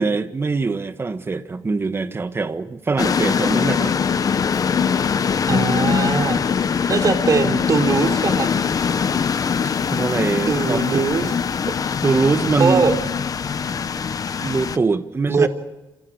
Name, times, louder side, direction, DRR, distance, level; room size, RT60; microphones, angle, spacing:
voice 1, 0.0-3.9 9.6-11.0 12.0-13.0 14.4-15.5, right 4 dB, 25° right, 1.5 m, -23 dB
sound 1, 3.0-14.8, left 6 dB, 45° left, 0.9 m, -22 dB
voice 2, 5.5-6.4 6.9-8.5 10.5-11.3 12.6-12.9 15.3-15.5, right 4 dB, 40° right, 3.3 m, -20 dB
28.5 x 27.5 x 4.9 m
cardioid pair, 130°, 9 cm